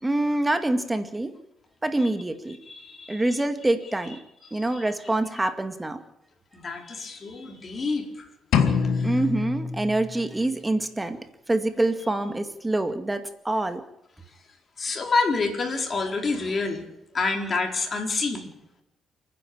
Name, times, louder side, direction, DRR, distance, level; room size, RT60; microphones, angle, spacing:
voice 1, 0.0-1.3 1.8-2.6 3.1-4.2 4.5-6.0 9.0-11.2 11.5-13.8, right 2 dB, 15° right, 8 dB, 2.1 m, -26 dB
voice 2, 2.7-3.2 6.5-8.1 14.8-16.8 17.1-18.5, left 3 dB, 40° left, 2 dB, 4.7 m, -27 dB
sound 1, 8.5-10.5, left 6 dB, 85° left, 2.2 m, -25 dB
29.0 x 10.5 x 8.8 m, 0.83 s
cardioid pair, 90°, 0 cm